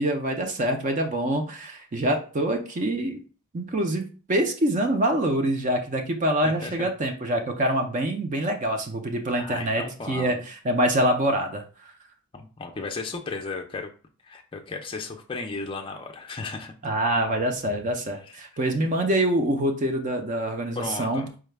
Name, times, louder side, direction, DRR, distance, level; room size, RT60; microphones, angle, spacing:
voice 1, 0.0-3.2 3.5-11.9 16.8-21.4, right 1 dB, 35° right, 4 dB, 0.5 m, -25 dB
voice 2, 6.4-6.9 9.4-10.4 12.3-13.9 14.2-16.7 18.3-18.4 20.8-21.3, left 3 dB, 25° left, 2 dB, 0.4 m, -35 dB
4.7 x 2.2 x 3.3 m, 0.37 s
head